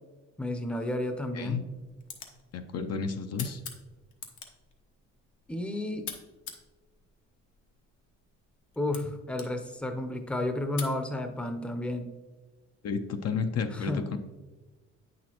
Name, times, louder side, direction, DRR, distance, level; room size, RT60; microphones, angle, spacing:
voice 1, 0.4-1.6 5.5-6.1 8.8-12.1 13.7-14.1, left 1 dB, 5° left, 6 dB, 0.7 m, -32 dB
sound 1, 1.6-11.0, left 6 dB, 75° left, 1.1 m, -47 dB
voice 2, 2.5-3.6 12.8-14.2, left 5 dB, 55° left, 7 dB, 0.6 m, -31 dB
8.6 x 6.3 x 2.9 m, 1.2 s
cardioid pair, 90°, 30 cm